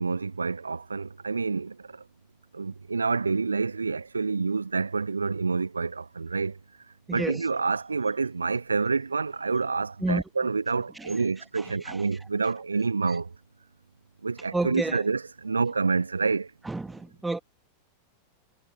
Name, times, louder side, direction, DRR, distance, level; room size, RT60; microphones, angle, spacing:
voice 1, 0.0-1.8 2.5-6.6 7.1-13.3 14.2-16.5, right 4 dB, 75° right, 0.9 m, -28 dB
voice 2, 7.1-7.5 10.0-10.2 10.9-11.2 11.6-12.1 13.1-13.2 14.5-15.0 16.6-17.4, right 2 dB, 10° right, 2.0 m, -31 dB
figure-of-eight pair, 90°, 0 cm